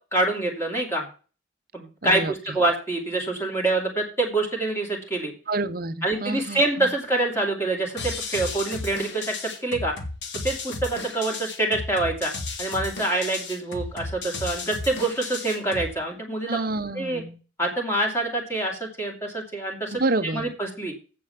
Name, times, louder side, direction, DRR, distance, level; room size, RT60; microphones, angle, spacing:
voice 1, 0.1-1.1 1.7-5.3 6.0-9.9 10.4-12.3 12.6-16.6 16.9-17.2 17.6-20.0 20.3-20.9, right 2 dB, 15° left, 2.8 m, -26 dB
voice 2, 2.0-2.6 5.5-6.9 16.5-17.4 19.9-20.5, right 2 dB, 45° right, 0.8 m, -29 dB
sound 1, 8.0-16.0, left 3 dB, 55° left, 1.7 m, -34 dB
8.3 x 8.0 x 5.8 m
head